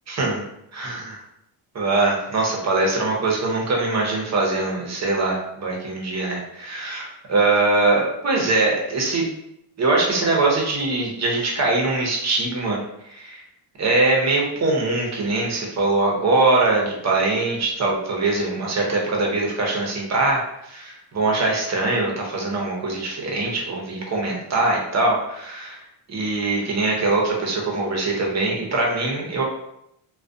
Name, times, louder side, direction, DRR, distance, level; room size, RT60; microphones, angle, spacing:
voice 1, 0.1-0.4 0.7-1.2 1.7-9.3 9.8-13.4 13.8-25.8 26.1-29.4, right 2 dB, 35° right, -1 dB, 0.8 m, -22 dB
2.3 x 2.3 x 2.5 m, 0.77 s
cardioid pair, 95°, 50 cm